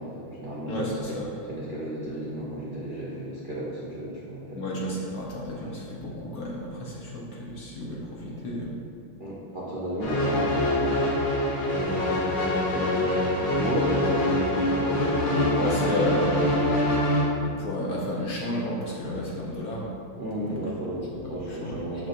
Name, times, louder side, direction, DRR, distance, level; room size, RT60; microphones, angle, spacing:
voice 1, 0.0-4.8 9.2-11.2 12.7-15.7 20.2-22.1, right 1 dB, 90° right, -7 dB, 0.4 m, -34 dB
voice 2, 0.7-1.3 4.5-8.7 15.6-16.6 17.4-19.9 20.4-20.6 21.5-21.9, left 1 dB, 55° left, -3 dB, 1.1 m, -32 dB
sound 1, 10.0-17.2, left 1 dB, 85° left, 2.0 m, -24 dB
11.5 x 4.0 x 2.5 m, 2.3 s
omnidirectional pair, 2.3 m